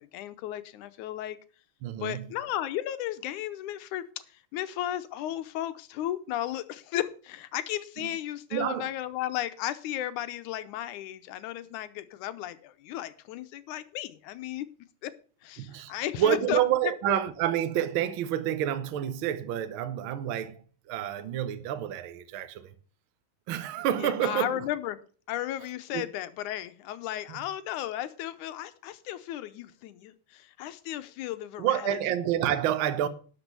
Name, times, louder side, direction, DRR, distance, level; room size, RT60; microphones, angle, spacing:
voice 1, 0.0-1.4 2.0-4.1 4.5-14.7 15.0-15.1 15.4-16.6 17.1-17.2 24.0-25.0 25.3-32.0, left 13 dB, 80° left, 2.1 m, -34 dB
voice 2, 1.8-2.3 8.0-8.1 8.5-8.9 15.6-22.7 23.5-24.7 25.9-26.0 27.3-27.4 31.6-33.1, right 11 dB, 85° right, 1.1 m, -29 dB
12.5 x 6.1 x 6.7 m
omnidirectional pair, 3.7 m